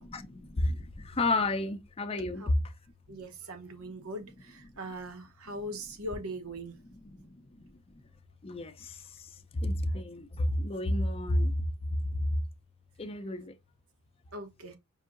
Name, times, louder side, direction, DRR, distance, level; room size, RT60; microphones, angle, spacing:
voice 1, 0.1-2.6 3.1-3.2 7.0-8.0 8.4-12.4 13.0-13.5, left 1 dB, 25° left, 0.5 m, -31 dB
voice 2, 3.1-6.8 7.2-7.3 9.9-10.0 14.3-14.8, right 1 dB, 80° right, 0.9 m, -41 dB
5.5 x 2.7 x 2.5 m
head